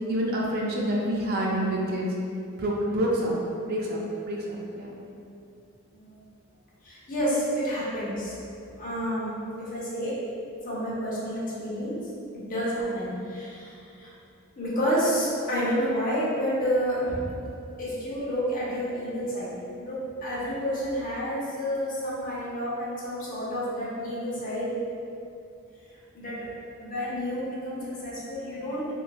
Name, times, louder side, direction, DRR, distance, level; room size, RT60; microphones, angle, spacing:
voice 1, 0.1-2.1 2.6-3.3 3.7-4.0 4.3-4.9, right 1 dB, 50° right, -3 dB, 0.4 m, -27 dB
voice 2, 6.8-8.3 8.8-9.3 9.6-10.2 10.6-12.0 12.3-14.1 14.6-17.2 17.8-19.5 19.8-24.7 26.1-26.4 26.8-28.9, equal, 40° left, -7 dB, 0.6 m, -29 dB
3.0 x 2.1 x 2.3 m, 2.6 s
head